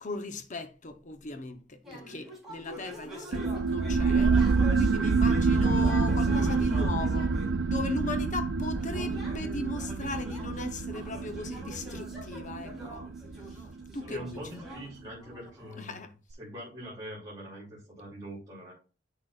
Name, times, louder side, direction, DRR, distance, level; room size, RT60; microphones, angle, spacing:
voice 1, 0.0-4.4 4.7-13.0 13.9-14.4 15.8-16.1, left 3 dB, 45° left, 0.9 m, -38 dB
sound 1, 1.8-7.5 8.7-15.9, equal, ahead, 3.6 m, -45 dB
sound 2, 3.3-14.5, right 4 dB, 85° right, 0.5 m, -27 dB
voice 2, 14.1-16.0 16.4-18.7, equal, 20° right, 2.8 m, -43 dB
8.2 x 6.3 x 2.5 m
head